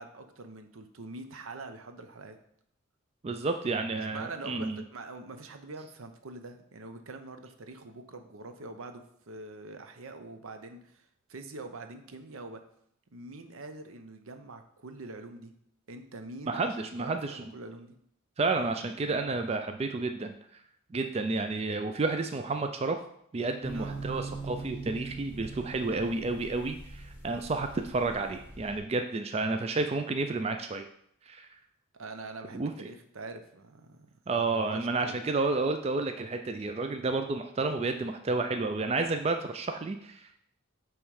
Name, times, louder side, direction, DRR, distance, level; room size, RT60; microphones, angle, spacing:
voice 1, 0.0-2.4 4.1-12.6 13.1-15.5 15.9-18.0 23.7-24.0 32.0-34.1 34.5-35.2, right 3 dB, 80° right, 7 dB, 0.7 m, -44 dB
voice 2, 3.2-4.8 16.5-17.4 18.4-20.4 20.9-23.0 23.3-30.9 31.3-31.5 32.5-32.9 34.3-40.4, right 3 dB, 30° right, 6 dB, 0.3 m, -31 dB
sound 1, 23.6-28.8, right 3 dB, 10° right, 1.3 m, -42 dB
8.8 x 3.2 x 4.7 m, 0.70 s
head